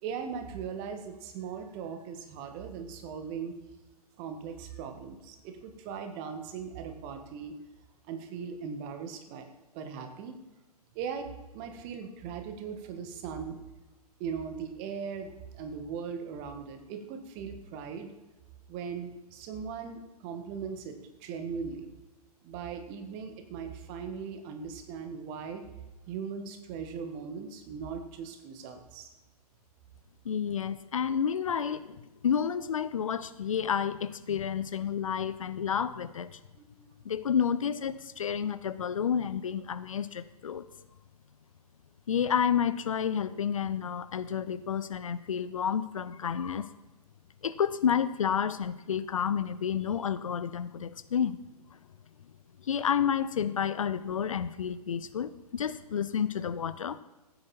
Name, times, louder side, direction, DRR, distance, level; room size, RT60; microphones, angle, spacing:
voice 1, 0.0-3.5 4.2-7.5 8.1-9.5 9.7-10.4 10.9-13.6 14.2-18.1 18.7-21.9 22.4-25.6 26.1-29.1 36.5-36.9, right 6 dB, 30° right, 6 dB, 1.7 m, -39 dB
voice 2, 30.2-36.4 37.0-40.7 42.1-46.7 47.4-51.4 52.6-57.0, left 8 dB, 55° left, 14 dB, 0.6 m, -30 dB
15.5 x 9.6 x 4.3 m, 1.1 s
figure-of-eight pair, 115°, 20 cm